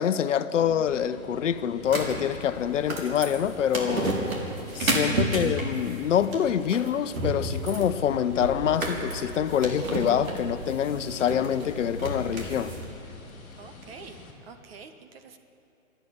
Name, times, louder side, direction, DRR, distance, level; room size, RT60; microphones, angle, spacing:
voice 1, 0.0-4.2 4.7-12.7, left 9 dB, 60° left, 0.9 m, -26 dB
sound 1, 0.6-14.3, left 3 dB, ahead, 0.4 m, -47 dB
sound 2, 1.8-12.8, right 2 dB, 80° right, 4.4 m, -31 dB
voice 2, 13.6-15.4, right 5 dB, 45° right, 1.4 m, -47 dB
27.0 x 10.5 x 9.4 m
hypercardioid pair, 150°, 41 cm